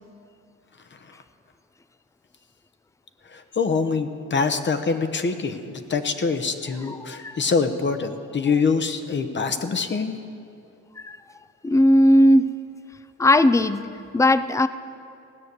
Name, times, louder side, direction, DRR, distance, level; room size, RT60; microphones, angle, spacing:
voice 1, 3.3-10.1, left 4 dB, 40° left, 8 dB, 1.0 m, -24 dB
voice 2, 11.6-12.5 13.2-13.9 14.1-14.7, left 1 dB, 10° left, 13 dB, 0.5 m, -17 dB
16.5 x 6.5 x 9.6 m, 2.5 s
cardioid pair, 90°, 30 cm